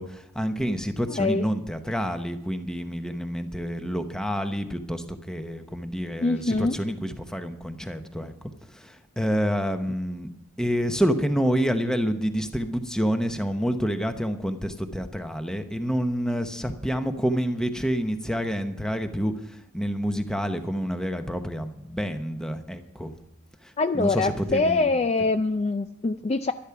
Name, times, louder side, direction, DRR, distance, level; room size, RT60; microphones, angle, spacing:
voice 1, 0.0-10.3 10.6-23.1 23.6-24.9, equal, 5° left, 7 dB, 0.9 m, -28 dB
voice 2, 1.1-1.5 6.2-6.7 23.8-26.5, left 3 dB, 30° left, 9 dB, 0.4 m, -24 dB
12.0 x 12.0 x 5.9 m, 0.85 s
head